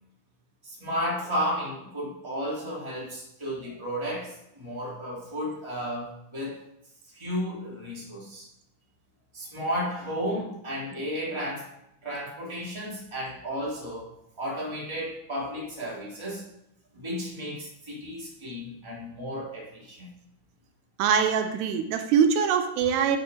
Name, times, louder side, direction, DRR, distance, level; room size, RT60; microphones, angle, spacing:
voice 1, 0.6-6.6 7.1-8.5 9.3-11.7 12.0-14.1 14.4-16.4 16.9-20.1, equal, 5° right, -6 dB, 3.0 m, -33 dB
voice 2, 21.0-23.2, right 7 dB, 80° right, 6 dB, 2.9 m, -23 dB
13.0 x 7.5 x 4.6 m, 0.82 s
omnidirectional pair, 4.8 m